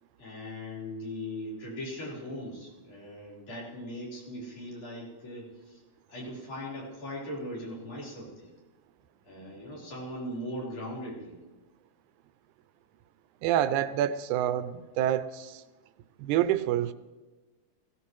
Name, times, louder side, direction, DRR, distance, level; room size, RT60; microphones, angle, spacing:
voice 1, 0.2-5.8 6.1-8.5 9.2-11.4, left 1 dB, 75° left, -6 dB, 5.6 m, -39 dB
voice 2, 13.4-15.6 16.2-16.9, right 11 dB, 85° right, 12 dB, 2.0 m, -27 dB
20.0 x 16.0 x 3.1 m, 1.2 s
omnidirectional pair, 3.4 m